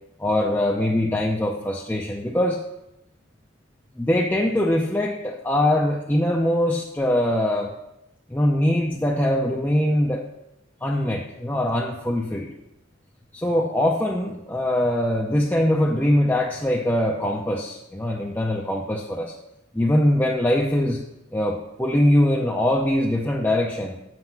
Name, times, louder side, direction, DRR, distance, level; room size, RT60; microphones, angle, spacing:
voice 1, 0.2-2.6 4.0-7.7 8.3-10.3 10.8-12.5 13.3-19.3 19.7-21.0 21.3-24.0, left 1 dB, 10° left, -2 dB, 0.6 m, -22 dB
7.9 x 6.6 x 5.8 m, 0.85 s
head